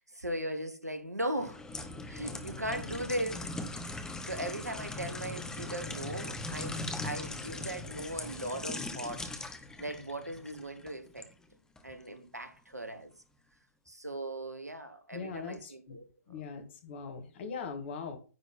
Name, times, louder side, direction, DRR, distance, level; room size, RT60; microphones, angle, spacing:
voice 1, 0.0-1.6 2.0-3.5 3.8-11.3 11.8-13.1 13.9-16.4, right 1 dB, 90° right, 1.3 m, -38 dB
sound 1, 1.4-11.3 11.8-11.9, left 2 dB, 5° left, 0.9 m, -40 dB
voice 2, 15.1-16.0 16.3-18.2, left 5 dB, 45° left, 1.8 m, -41 dB
9.7 x 4.0 x 4.1 m
figure-of-eight pair, 115°, 8 cm